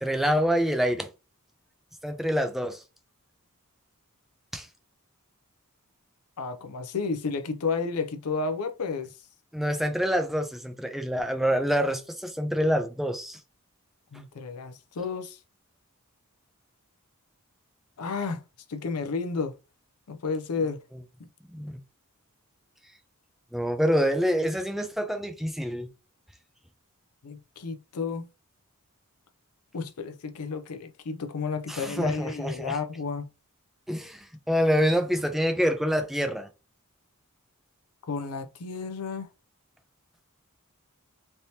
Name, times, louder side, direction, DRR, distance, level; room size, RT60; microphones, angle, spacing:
voice 1, 0.0-1.1 2.0-2.8 4.5-4.7 9.5-13.4 21.5-21.8 23.5-25.9 31.7-32.8 33.9-36.5, equal, ahead, 0.4 m, -26 dB
voice 2, 6.4-9.2 14.1-15.4 18.0-18.4 18.7-19.6 20.1-20.8 21.2-21.3 27.2-28.3 29.7-33.3 38.1-39.3, left 4 dB, 85° left, 0.5 m, -32 dB
3.3 x 2.8 x 2.7 m
head